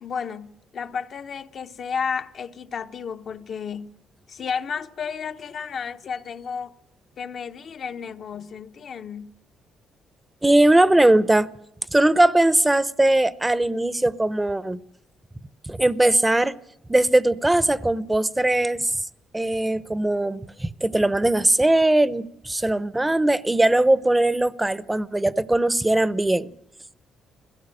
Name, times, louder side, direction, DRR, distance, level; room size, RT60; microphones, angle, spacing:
voice 1, 0.0-3.9 4.3-6.8 7.2-9.3, left 6 dB, 55° left, 1.0 m, -32 dB
voice 2, 10.4-11.5 11.9-14.8 15.7-16.5 16.9-18.9 19.3-26.5, right 1 dB, 15° right, 0.8 m, -20 dB
21.5 x 16.5 x 9.0 m
cardioid pair, 90°, 0 cm